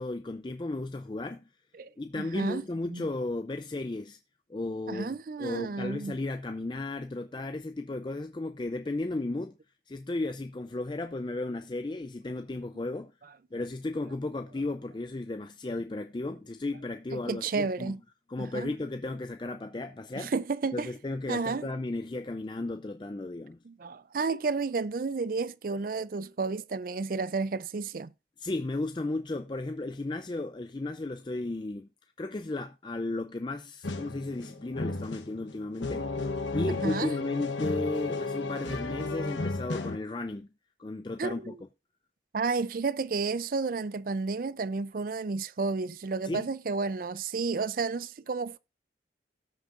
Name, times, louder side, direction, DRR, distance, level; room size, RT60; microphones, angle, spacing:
voice 1, 0.0-1.5 2.0-4.2 4.5-9.5 9.9-13.1 13.5-17.9 18.3-20.3 20.7-23.6 28.4-31.9 32.2-36.1 36.5-40.5 40.8-41.5 46.2-46.5, left 2 dB, 25° left, 0.4 m, -34 dB
voice 2, 2.2-2.6 2.9-3.1 4.9-6.2 17.1-18.0 18.4-18.7 20.2-20.9 21.3-21.7 23.7-28.1 36.7-37.1 41.2-41.6 42.3-48.6, right 4 dB, 50° right, 0.4 m, -31 dB
sound 1, 33.8-40.0, left 3 dB, 90° left, 1.1 m, -33 dB
18.0 x 6.4 x 2.5 m
head